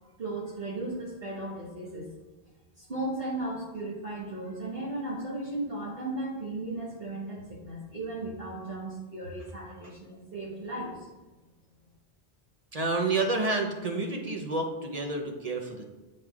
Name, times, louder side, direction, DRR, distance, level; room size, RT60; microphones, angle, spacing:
voice 1, 0.2-2.1 2.8-11.1, right 2 dB, 60° right, -7 dB, 1.4 m, -36 dB
voice 2, 12.7-15.8, right 3 dB, 45° right, 2 dB, 0.6 m, -29 dB
8.9 x 4.6 x 2.4 m, 1.2 s
omnidirectional pair, 1.1 m